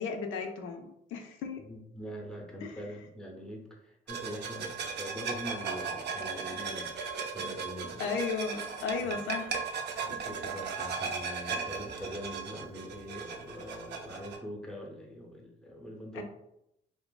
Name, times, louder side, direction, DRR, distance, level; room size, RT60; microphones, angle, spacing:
voice 1, 0.0-1.6 2.6-2.8 8.0-9.5 16.1-16.2, left 5 dB, 80° left, 4 dB, 0.4 m, -35 dB
voice 2, 1.6-8.1 9.0-9.2 10.0-16.2, equal, 5° left, 0 dB, 0.6 m, -43 dB
sound 1, 4.1-14.4, right 5 dB, 60° right, 0.4 m, -37 dB
2.8 x 2.5 x 2.2 m, 0.81 s
cardioid pair, 90°, 20 cm